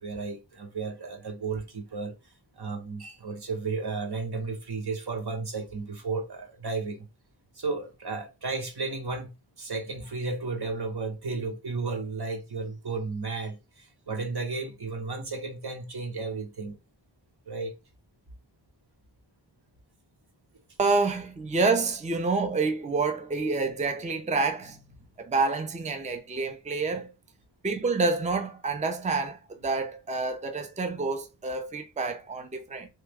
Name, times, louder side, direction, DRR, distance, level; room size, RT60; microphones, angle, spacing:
voice 1, 0.0-2.1 2.6-7.1 7.5-9.3 9.6-16.8 17.5-17.7, right 4 dB, 55° right, 1.0 m, -33 dB
voice 2, 20.8-24.8 25.2-27.1 27.6-32.9, right 3 dB, 15° right, 0.5 m, -28 dB
3.1 x 2.2 x 3.4 m
wide cardioid pair, 65°, 47 cm